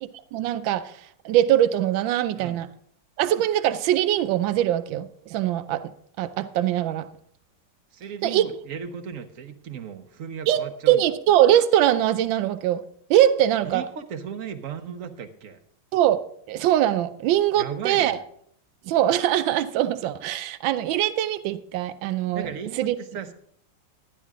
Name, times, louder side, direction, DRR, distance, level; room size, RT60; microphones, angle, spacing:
voice 1, 0.3-2.7 3.2-5.9 6.2-7.1 8.2-8.5 10.5-12.8 13.1-13.8 15.9-16.2 16.5-18.2 18.9-22.5 22.8-22.9, right 12 dB, 85° right, 1.3 m, -22 dB
voice 2, 7.9-11.1 13.6-15.6 17.6-18.2 22.3-23.3, right 7 dB, 55° right, 1.0 m, -36 dB
12.0 x 10.0 x 3.6 m
omnidirectional pair, 2.0 m